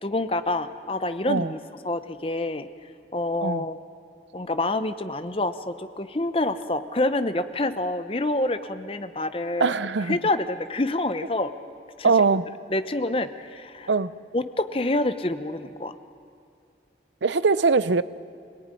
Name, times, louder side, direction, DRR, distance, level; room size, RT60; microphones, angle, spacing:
voice 1, 0.0-1.6 1.8-2.7 3.1-3.8 4.3-9.7 10.1-11.5 12.0-12.1 12.7-13.9 14.3-15.9, left 2 dB, 30° left, 11 dB, 0.8 m, -27 dB
voice 2, 9.6-10.2 12.0-12.5 13.9-14.1 17.2-18.0, right 4 dB, 90° right, 16 dB, 0.7 m, -21 dB
26.0 x 18.0 x 10.0 m, 2.4 s
head